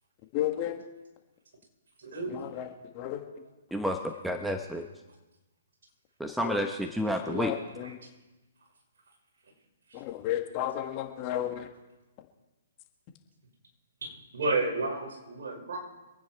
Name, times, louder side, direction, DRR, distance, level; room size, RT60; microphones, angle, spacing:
voice 1, 0.3-0.8 2.3-2.7 2.9-3.2 6.4-6.6 7.1-7.9 9.9-11.7, left 12 dB, 35° left, 4 dB, 2.0 m, -33 dB
voice 2, 2.0-2.5 7.8-7.9 9.9-10.0 14.0-15.8, right 3 dB, 65° right, -1 dB, 6.1 m, -32 dB
voice 3, 4.2-4.9 6.2-7.5, equal, 5° right, 5 dB, 1.1 m, -30 dB
26.0 x 9.5 x 4.6 m, 1.1 s
hypercardioid pair, 130°, 0 cm